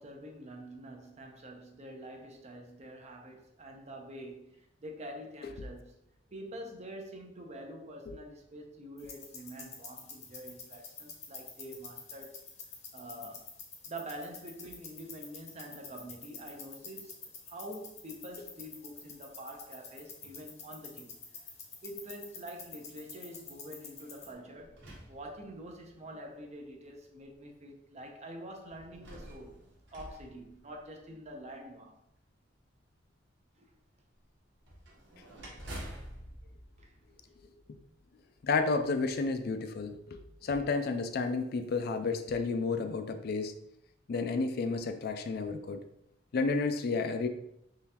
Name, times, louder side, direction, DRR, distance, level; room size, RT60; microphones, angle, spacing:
voice 1, 0.0-6.0 6.3-12.4 12.9-13.5 13.9-21.3 21.8-24.8 25.1-29.6 29.9-32.0 33.6-33.7 36.8-37.0, right 1 dB, 35° right, 2 dB, 0.6 m, -46 dB
sound 1, 9.0-24.3, left 5 dB, 35° left, 0.8 m, -49 dB
sound 2, 24.0-25.9 26.7-26.8 28.7-31.2 34.6-37.7, right 1 dB, 70° right, 1.2 m, -48 dB
voice 2, 38.4-43.5 44.1-45.8 46.3-47.3, left 4 dB, 55° left, 7 dB, 0.4 m, -31 dB
3.7 x 3.2 x 2.9 m, 0.77 s
head